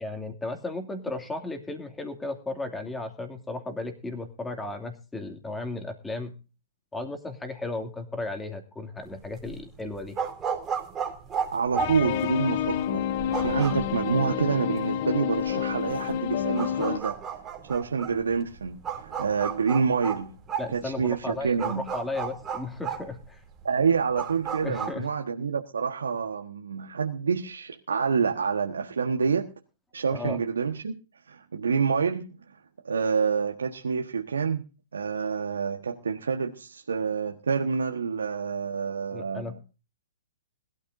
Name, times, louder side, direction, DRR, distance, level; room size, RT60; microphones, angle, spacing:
voice 1, 0.0-6.3 6.9-10.2 20.6-23.4 24.6-25.1 30.1-30.4 39.1-39.5, left 2 dB, 10° left, 5 dB, 2.6 m, -35 dB
sound 1, 9.1-24.9, right 7 dB, 20° right, 3.0 m, -34 dB
voice 2, 11.5-13.0 13.4-17.2 17.6-20.3 20.7-21.8 23.6-29.5 29.9-30.9 31.3-32.3 32.8-34.6 34.9-39.6, right 5 dB, 75° right, 3 dB, 1.4 m, -27 dB
sound 2, 11.8-17.0, left 10 dB, 45° left, 0.8 m, -29 dB
21.0 x 13.0 x 2.7 m, 0.32 s
figure-of-eight pair, 120°, 0 cm